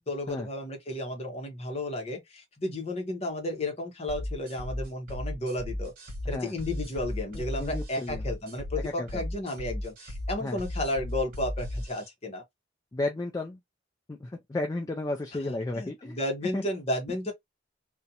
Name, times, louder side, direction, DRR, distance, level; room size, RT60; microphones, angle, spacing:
voice 1, 0.1-5.9 6.3-12.4 15.4-17.3, left 1 dB, 35° left, 0.8 m, -33 dB
sound 1, 4.1-12.1, left 1 dB, 50° right, 1.1 m, -36 dB
voice 2, 7.3-8.2 9.0-9.2 10.4-10.6 12.9-13.6 14.1-16.2 16.5-16.6, left 2 dB, 20° left, 0.3 m, -33 dB
2.5 x 2.1 x 2.7 m
head